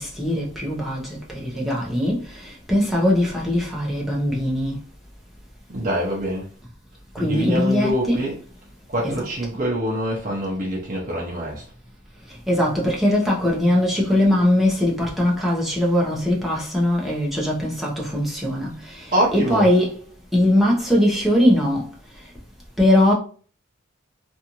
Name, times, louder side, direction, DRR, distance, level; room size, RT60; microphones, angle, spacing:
voice 1, 0.0-4.7 7.1-8.2 9.0-9.2 12.5-19.1 19.3-19.9 20.3-21.9 22.8-23.1, left 1 dB, ahead, 0.7 m, -21 dB
voice 2, 5.7-6.5 7.2-8.3 8.9-11.6 19.1-19.7, equal, 40° right, 0.6 m, -25 dB
2.6 x 2.4 x 2.9 m
head